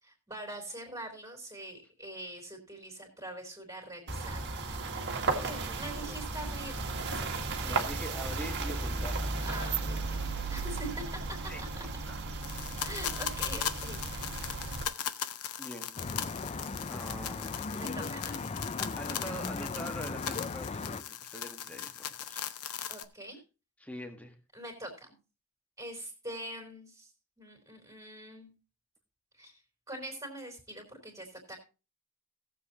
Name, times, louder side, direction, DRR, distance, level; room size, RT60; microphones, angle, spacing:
voice 1, 0.0-4.4 5.3-7.9 9.4-10.2 10.5-11.4 12.8-14.0 17.7-18.4 22.9-23.4 24.5-25.1 25.8-27.1 27.4-28.5 29.3-29.6 29.9-31.6, right 1 dB, 15° right, 1 dB, 3.4 m, -44 dB
sound 1, 4.1-14.9, right 3 dB, 55° right, 1.7 m, -35 dB
voice 2, 5.2-5.8 6.0-6.3 7.6-9.8 11.4-11.6 12.1-12.2 15.6-15.9 16.9-17.8 18.8-22.5 23.8-24.3, equal, 5° left, 4 dB, 1.7 m, -44 dB
sound 2, 12.4-23.0, left 9 dB, 85° left, 0.9 m, -39 dB
Traffic noise roadway noise, 16.0-21.0, left 4 dB, 30° left, 0.5 m, -37 dB
18.5 x 7.6 x 2.9 m, 0.31 s
head